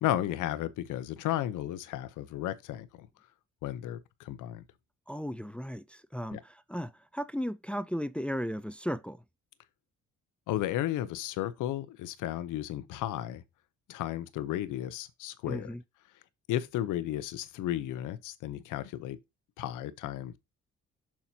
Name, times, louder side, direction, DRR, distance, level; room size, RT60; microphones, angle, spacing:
voice 1, 0.0-3.1 3.6-4.6 6.3-6.4 10.5-13.4 13.9-15.7 16.5-19.2 19.6-20.4, left 13 dB, 90° left, 0.9 m, -34 dB
voice 2, 5.1-9.2 15.5-15.8, equal, 5° left, 0.5 m, -35 dB
7.3 x 5.8 x 2.8 m
cardioid pair, 90°, 30 cm